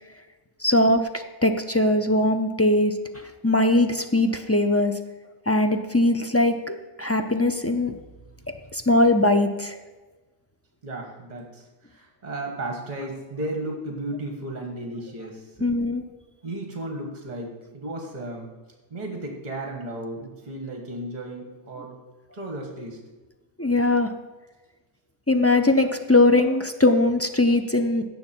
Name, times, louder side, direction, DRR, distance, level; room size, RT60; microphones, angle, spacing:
voice 1, 0.6-5.0 5.5-7.9 8.7-9.8 15.6-16.0 23.6-24.1 25.3-28.0, left 2 dB, 20° left, 6 dB, 0.3 m, -21 dB
voice 2, 10.8-15.7 16.4-18.5 18.9-21.9 22.3-23.0, right 1 dB, 40° right, 2 dB, 1.5 m, -34 dB
16.5 x 6.4 x 4.4 m, 1.2 s
omnidirectional pair, 1.2 m